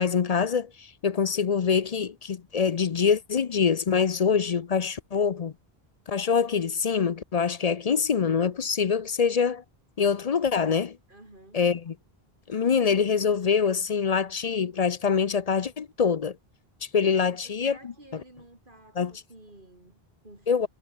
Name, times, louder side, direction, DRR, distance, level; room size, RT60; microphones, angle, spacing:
voice 1, 0.0-5.5 6.1-9.6 10.0-11.0 11.5-11.9 12.5-16.4 16.9-18.2 19.0-19.1 20.5-20.7, left 6 dB, 45° left, 0.6 m, -25 dB
voice 2, 11.1-11.6 17.1-20.7, right 1 dB, 55° right, 4.8 m, -52 dB
omnidirectional pair, 1.1 m